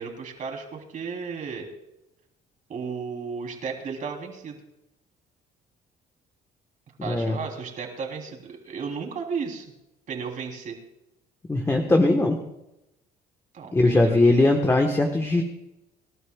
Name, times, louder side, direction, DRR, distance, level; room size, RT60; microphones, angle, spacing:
voice 1, 0.0-1.7 2.7-4.6 7.0-9.7 10.1-10.8 13.5-14.6, right 5 dB, 50° right, 2 dB, 3.4 m, -34 dB
voice 2, 7.0-7.4 11.5-12.4 13.7-15.4, left 2 dB, 15° left, 3 dB, 1.3 m, -20 dB
26.5 x 12.5 x 2.4 m, 0.91 s
cardioid pair, 110°, 17 cm